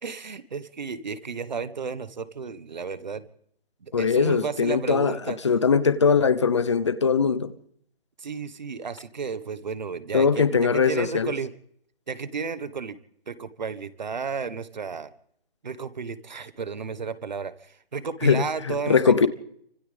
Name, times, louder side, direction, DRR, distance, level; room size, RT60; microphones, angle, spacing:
voice 1, 0.0-3.3 3.8-5.4 8.2-11.5 12.1-13.0 13.3-15.1 15.6-19.3, right 5 dB, 45° right, 1.5 m, -33 dB
voice 2, 3.9-5.2 5.4-7.5 10.1-11.3 18.2-19.3, left 5 dB, 30° left, 0.9 m, -21 dB
29.5 x 25.5 x 3.5 m
hypercardioid pair, 170°, 30 cm